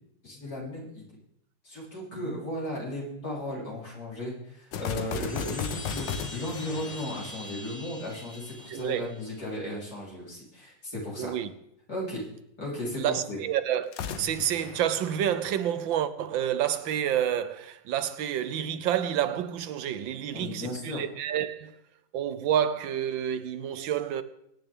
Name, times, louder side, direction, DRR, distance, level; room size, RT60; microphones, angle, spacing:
voice 1, 0.2-1.1 1.6-11.3 11.9-12.2 12.6-13.4 20.3-21.0, left 1 dB, 50° left, 4.8 m, -35 dB
sound 1, 4.7-8.2 13.8-15.9, left 7 dB, 70° left, 1.5 m, -36 dB
Chime, 5.0-9.6, left 1 dB, 25° left, 1.2 m, -44 dB
voice 2, 8.7-9.1 11.2-11.5 13.0-13.9 14.2-21.7 22.1-24.2, right 10 dB, 80° right, 1.5 m, -29 dB
23.0 x 9.9 x 3.6 m
omnidirectional pair, 2.1 m